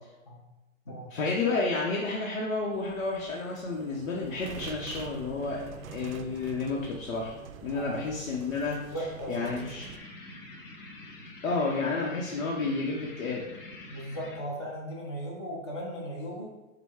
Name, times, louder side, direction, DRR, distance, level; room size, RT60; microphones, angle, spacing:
voice 1, 1.1-7.3 7.6-9.9 11.4-13.5, left 3 dB, 75° left, -3 dB, 1.0 m, -31 dB
sound 1, 2.7-10.0, right 7 dB, 80° right, 0.6 m, -46 dB
voice 2, 7.7-8.0 8.9-9.7 13.9-16.5, equal, 20° left, -3 dB, 0.6 m, -37 dB
sound 2, 9.4-14.4, left 2 dB, 40° left, 0.9 m, -46 dB
5.7 x 2.2 x 3.6 m, 1.0 s
hypercardioid pair, 170°, 40 cm